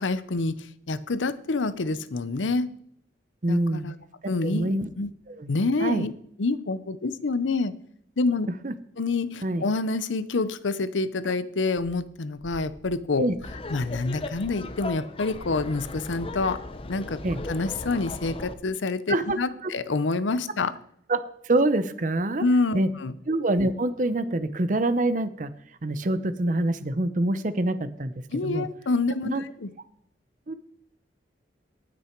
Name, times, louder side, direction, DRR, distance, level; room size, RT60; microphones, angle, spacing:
voice 1, 0.0-2.7 3.5-3.9 4.3-5.1 5.5-6.1 6.4-7.7 8.2-8.5 9.0-13.2 13.7-16.6 16.9-17.2 17.5-20.8 22.4-23.1 28.3-29.7, left 3 dB, 90° left, 14 dB, 0.7 m, -27 dB
voice 2, 3.4-3.9 4.4-4.9 5.4-5.5 5.8-6.0 8.6-8.7 9.4-9.6 13.2-13.4 17.2-17.4 19.1-19.4 19.6-19.7 21.1-21.2 21.4-22.4 22.7-22.9 23.3-25.5 25.8-28.1 28.4-28.7 29.2-29.4 30.5-30.6, right 2 dB, 45° right, 13 dB, 0.7 m, -25 dB
sound 1, 11.7-11.9 12.3-13.8 14.3-14.8 15.2-15.8 16.3-16.9 17.2-17.8 18.2-18.4, equal, 15° left, 4.8 m, -49 dB
Laughter, 13.4-18.5, left 2 dB, 30° left, 0.7 m, -37 dB
18.5 x 6.2 x 4.5 m, 0.68 s
head